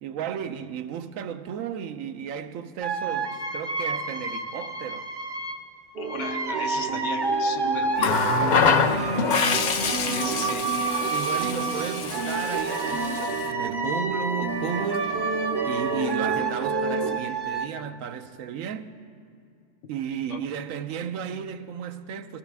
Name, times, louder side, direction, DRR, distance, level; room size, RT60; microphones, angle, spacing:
voice 1, 0.0-5.1 10.1-10.6 11.1-15.2 15.6-18.9 19.9-22.4, right 8 dB, 80° right, 1.0 m, -34 dB
sound 1, 2.8-5.6 6.0-17.7, right 4 dB, 40° right, 0.3 m, -30 dB
voice 2, 6.0-8.2 10.1-10.7 20.3-20.4, left 5 dB, 70° left, 1.0 m, -37 dB
sound 2, 6.0-17.2, right 4 dB, 55° right, 0.7 m, -32 dB
Water tap faucet, 8.0-13.5 14.7-14.9, left 5 dB, 50° left, 0.5 m, -25 dB
19.5 x 13.0 x 3.4 m
omnidirectional pair, 1.4 m